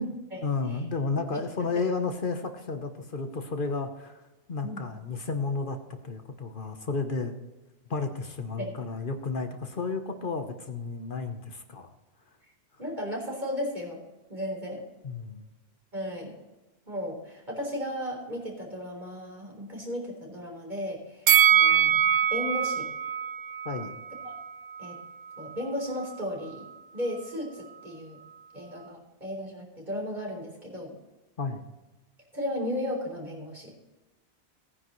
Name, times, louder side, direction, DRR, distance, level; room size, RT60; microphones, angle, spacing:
voice 1, 0.0-4.2 4.5-5.8 6.0-7.4 7.9-11.9 15.0-15.5 23.6-23.9 31.4-31.7, left 4 dB, 55° left, 6 dB, 1.2 m, -32 dB
voice 2, 1.3-1.7 4.6-4.9 8.6-8.7 12.8-14.0 14.3-14.8 15.9-16.3 16.9-22.9 24.2-24.3 24.8-25.0 25.4-26.7 26.9-28.2 28.5-30.9 32.3-33.7, left 1 dB, 50° right, -1 dB, 4.0 m, -35 dB
Bell, 21.3-24.5 24.8-24.9, right 9 dB, 70° right, 0.9 m, -23 dB
17.5 x 9.9 x 3.1 m, 1.1 s
omnidirectional pair, 1.0 m